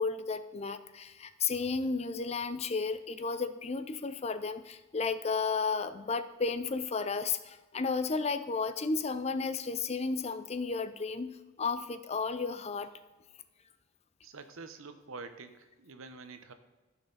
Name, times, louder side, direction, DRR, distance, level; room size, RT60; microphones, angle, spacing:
voice 1, 0.0-12.9, left 4 dB, 30° left, 12 dB, 0.5 m, -33 dB
voice 2, 14.2-16.5, right 4 dB, 90° right, 9 dB, 0.9 m, -47 dB
14.0 x 5.9 x 4.0 m, 1.2 s
head